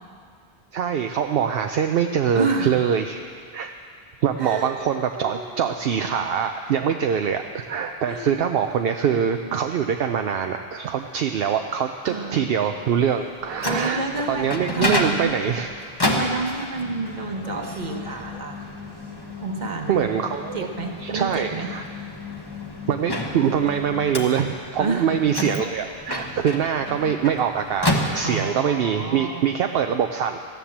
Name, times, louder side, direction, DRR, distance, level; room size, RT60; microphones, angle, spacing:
voice 1, 0.7-3.3 3.5-3.7 4.2-15.7 19.9-20.7 21.0-21.8 22.9-30.4, right 8 dB, 70° right, 5 dB, 0.8 m, -24 dB
voice 2, 2.3-2.8 4.4-4.8 5.2-5.7 8.1-8.4 12.0-12.5 13.6-15.3 16.0-18.6 19.4-20.1 20.5-21.7 24.8-25.4 28.2-29.5, right 3 dB, 45° right, 3 dB, 1.3 m, -29 dB
Microwave oven, 13.2-28.7, left 1 dB, 25° left, 1.1 m, -30 dB
14.5 x 10.5 x 7.3 m, 2.1 s
omnidirectional pair, 1.0 m